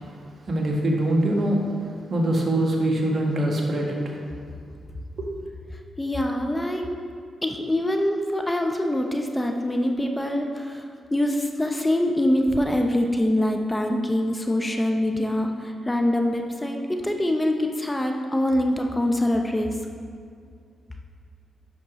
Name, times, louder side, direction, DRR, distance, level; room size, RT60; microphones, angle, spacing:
voice 1, 0.5-1.6 2.1-4.1 5.2-5.3, right 1 dB, 50° right, -1 dB, 1.4 m, -23 dB
voice 2, 6.0-6.9 7.4-10.8 11.1-19.7, left 1 dB, 15° left, 3 dB, 0.7 m, -24 dB
10.0 x 6.0 x 3.0 m, 2.2 s
supercardioid pair, 55°, 0 cm